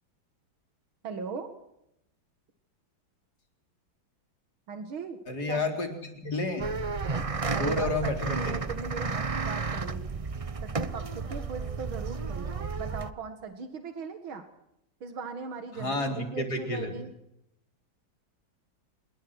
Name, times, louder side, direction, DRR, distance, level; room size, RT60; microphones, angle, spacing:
voice 1, 1.0-1.5 4.7-5.2 5.5-5.6 7.5-10.2 10.6-14.5 15.0-17.1, right 5 dB, 85° right, 8 dB, 2.6 m, -39 dB
voice 2, 5.3-6.7 7.5-8.6 15.7-16.9, left 2 dB, 50° left, 4 dB, 4.5 m, -31 dB
sound 1, 6.6-13.1, right 4 dB, 65° right, 0.3 m, -32 dB
27.0 x 21.0 x 6.4 m, 0.80 s
omnidirectional pair, 2.2 m